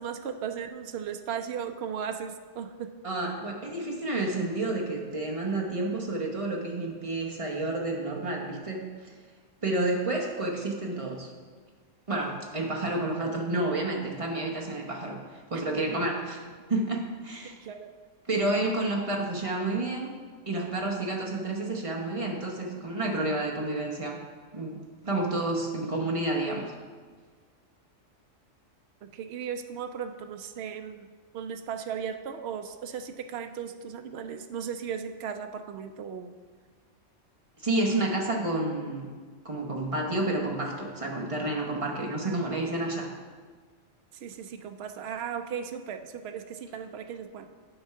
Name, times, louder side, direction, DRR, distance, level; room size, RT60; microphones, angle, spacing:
voice 1, 0.0-2.9 15.5-15.6 17.6-17.9 29.0-31.1 31.3-36.3 42.2-42.9 44.1-47.5, right 7 dB, 65° right, 7 dB, 0.7 m, -36 dB
voice 2, 3.0-8.8 9.6-11.3 12.1-16.4 16.7-17.5 18.3-20.2 20.5-24.2 24.5-26.7 37.6-39.1 39.4-43.1, right 2 dB, 30° right, -2 dB, 0.9 m, -30 dB
8.9 x 3.5 x 5.7 m, 1.6 s
omnidirectional pair, 1.3 m